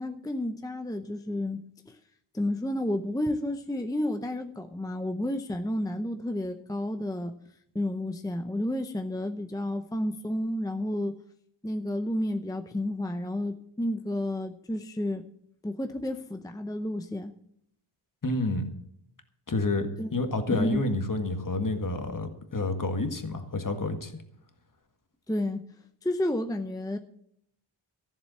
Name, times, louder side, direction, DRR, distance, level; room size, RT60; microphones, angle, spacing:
voice 1, 0.0-1.6 1.9-2.0 2.3-7.3 7.7-11.2 11.6-15.2 15.6-17.3 20.0-20.1 20.5-20.8 25.3-25.6 26.0-27.0, left 1 dB, 10° left, 6 dB, 0.7 m, -31 dB
voice 2, 18.2-18.7 19.5-24.1, left 2 dB, 40° left, 6 dB, 1.8 m, -29 dB
14.0 x 7.5 x 7.7 m, 0.72 s
wide cardioid pair, 120°, 49 cm